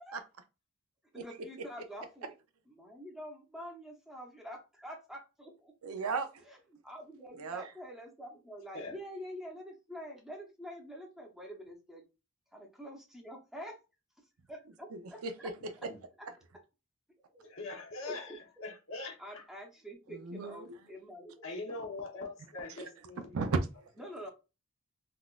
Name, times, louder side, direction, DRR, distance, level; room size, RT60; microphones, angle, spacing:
voice 1, 1.1-2.3 2.7-5.7 6.4-12.1 12.5-13.8 14.2-15.5 15.8-15.9 16.2-16.3 17.3-17.5 18.0-18.7 19.2-21.5 24.0-24.3, equal, ahead, 0.7 m, -47 dB
voice 2, 5.8-6.4 7.4-7.6 14.9-15.5 15.8-15.9 20.1-20.7 23.3-23.9, right 4 dB, 90° right, 0.5 m, -35 dB
voice 3, 17.4-18.3 18.6-19.4 21.4-23.3, left 3 dB, 65° left, 1.0 m, -42 dB
3.7 x 2.4 x 2.4 m
head